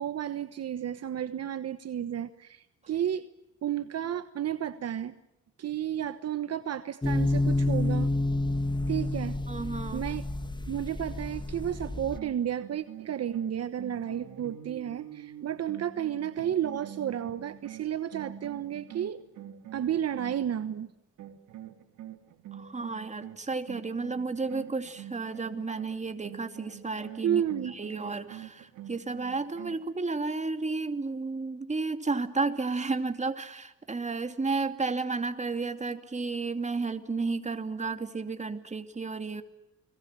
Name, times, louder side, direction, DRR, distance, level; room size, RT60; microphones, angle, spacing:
voice 1, 0.0-3.2 3.6-5.1 5.6-8.1 8.9-9.4 9.9-10.2 10.7-19.2 19.7-20.9 27.2-28.0, right 10 dB, 55° right, 11 dB, 1.3 m, -32 dB
sound 1, 7.0-12.2, left 2 dB, 15° left, 2.2 m, -29 dB
voice 2, 9.5-10.0 22.5-27.4 27.7-39.4, right 3 dB, 25° right, 8 dB, 2.7 m, -32 dB
sound 2, 12.1-20.8 21.2-29.9, right 10 dB, 80° right, 3.3 m, -46 dB
30.0 x 21.5 x 7.6 m, 0.93 s
cardioid pair, 90°, 30 cm